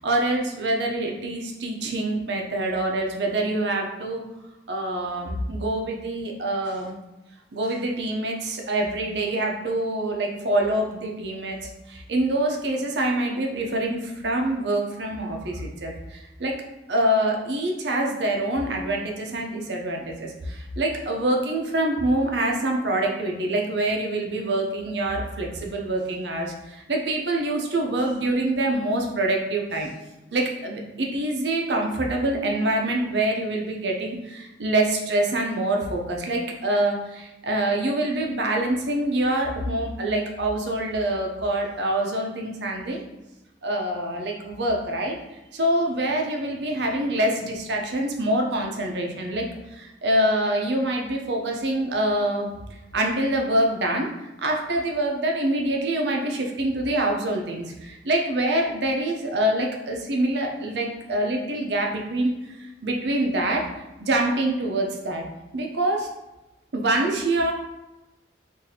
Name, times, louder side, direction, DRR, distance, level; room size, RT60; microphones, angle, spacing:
voice 1, 0.0-4.2 4.7-7.0 7.5-16.5 16.9-29.9 30.3-43.0 43.6-45.2 45.5-49.5 49.7-52.5 52.9-54.1 54.4-63.7 64.0-65.2 65.5-66.1 66.7-67.5, right 1 dB, 70° right, 1 dB, 0.6 m, -25 dB
2.8 x 2.6 x 4.0 m, 0.99 s
head